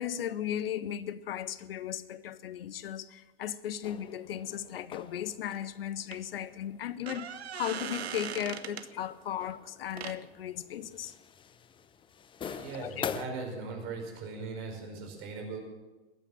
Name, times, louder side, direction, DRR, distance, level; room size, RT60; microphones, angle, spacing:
voice 1, 0.0-11.1 12.7-13.1, left 10 dB, 60° left, 0.8 m, -36 dB
sound 1, 3.8-13.3, left 8 dB, 15° left, 0.6 m, -46 dB
sound 2, 5.5-5.6 6.1-6.2 6.8-8.9 9.9-10.2 13.4-13.5 13.8-13.9, right 8 dB, 70° right, 1.0 m, -39 dB
voice 2, 12.4-15.6, right 4 dB, 40° right, 5.4 m, -39 dB
22.0 x 9.1 x 7.3 m
figure-of-eight pair, 95°, 32 cm